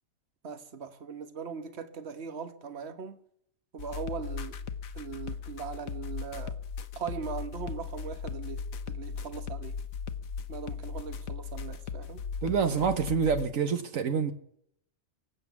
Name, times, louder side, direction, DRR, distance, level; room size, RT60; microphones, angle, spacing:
voice 1, 0.4-3.2 3.7-4.6 4.9-6.6 6.9-9.8 10.5-12.2, right 6 dB, 55° right, 1.5 m, -40 dB
sound 1, 3.8-13.5, left 6 dB, 90° left, 1.3 m, -38 dB
voice 2, 12.4-14.3, right 6 dB, 80° right, 1.4 m, -27 dB
24.0 x 8.2 x 7.1 m
omnidirectional pair, 1.4 m